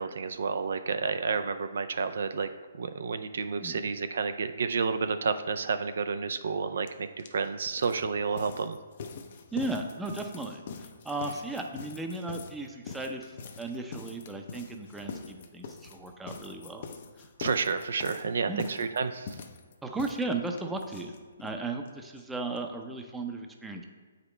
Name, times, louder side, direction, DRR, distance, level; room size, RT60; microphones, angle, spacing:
voice 1, 0.0-2.5 2.8-8.8 17.4-19.3, right 5 dB, 70° right, 10 dB, 0.4 m, -30 dB
voice 2, 3.6-3.9 9.5-16.9 18.5-18.9 19.8-21.1 21.4-23.8, right 2 dB, 5° right, 3 dB, 0.6 m, -36 dB
sound 1, 6.9-7.0 7.2-21.6 21.9-22.0 22.2-22.3 22.6-22.7, left 5 dB, 50° left, 0.6 m, -44 dB
8.2 x 5.1 x 3.2 m, 1.5 s
hypercardioid pair, 145°, 0 cm